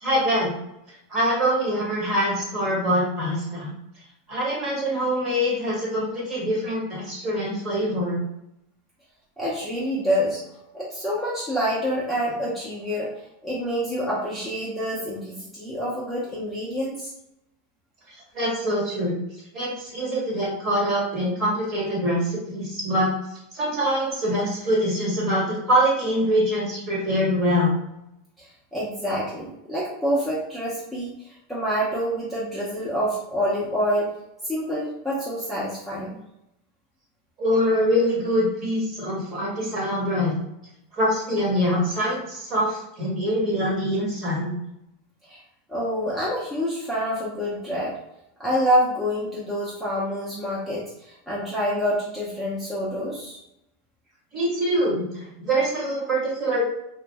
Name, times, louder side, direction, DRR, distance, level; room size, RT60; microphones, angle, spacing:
voice 1, 0.0-0.5 1.1-3.7 4.3-8.2 18.1-19.1 19.5-27.8 37.4-40.3 40.9-44.5 54.3-56.6, equal, 35° right, -4 dB, 1.2 m, -24 dB
voice 2, 9.4-10.4 10.7-17.1 28.4-34.1 34.4-36.2 45.2-45.4 45.7-47.9 48.4-53.4, equal, ahead, -8 dB, 0.5 m, -27 dB
2.5 x 2.0 x 3.3 m, 0.84 s
supercardioid pair, 150°, 0 cm